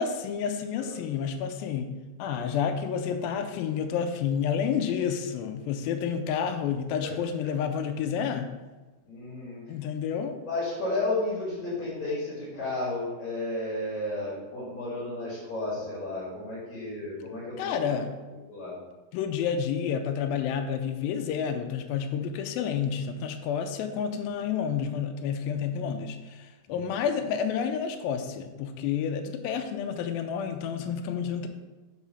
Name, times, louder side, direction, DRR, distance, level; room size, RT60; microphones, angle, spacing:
voice 1, 0.0-1.9 2.2-8.5 9.7-10.4 17.6-18.1 19.1-31.5, left 7 dB, 85° left, 6 dB, 2.0 m, -30 dB
voice 2, 9.0-9.6 10.5-17.9 18.3-18.7 26.7-26.9, left 2 dB, 50° left, -9 dB, 2.7 m, -33 dB
6.1 x 3.7 x 5.5 m, 1.2 s
omnidirectional pair, 4.6 m